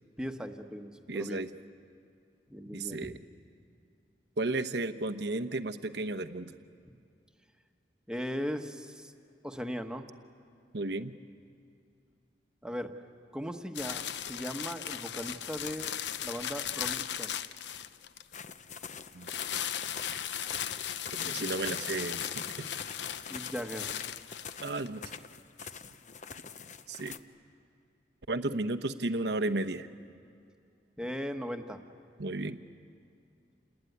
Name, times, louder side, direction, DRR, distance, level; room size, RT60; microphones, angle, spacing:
voice 1, 0.2-1.4 2.5-3.1 8.1-9.1 9.4-10.1 12.6-12.9 13.3-14.0 14.3-15.9 16.2-17.4 23.3-23.9 31.0-31.8, equal, 5° right, 5 dB, 1.3 m, -38 dB
voice 2, 1.1-1.5 2.7-3.2 4.4-6.5 10.7-11.1 19.1-19.3 21.1-22.7 24.6-25.0 26.9-27.1 28.3-29.9 32.2-32.6, right 2 dB, 70° right, 7 dB, 1.0 m, -33 dB
sound 1, 13.7-18.3 19.2-24.9, left 10 dB, 80° left, 0.7 m, -37 dB
sound 2, 18.3-27.2, left 6 dB, 45° left, 0.8 m, -45 dB
29.0 x 20.5 x 9.5 m, 2.6 s
head